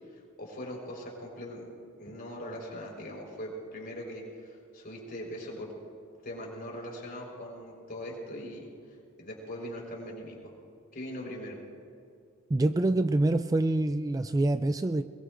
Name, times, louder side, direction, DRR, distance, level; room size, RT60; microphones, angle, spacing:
voice 1, 0.4-1.7 2.0-5.7 6.2-8.7 9.2-10.5 10.9-11.6, equal, 45° left, -1 dB, 4.4 m, -40 dB
voice 2, 12.5-15.0, right 2 dB, 15° right, 10 dB, 0.3 m, -26 dB
22.5 x 22.0 x 2.6 m, 2.5 s
head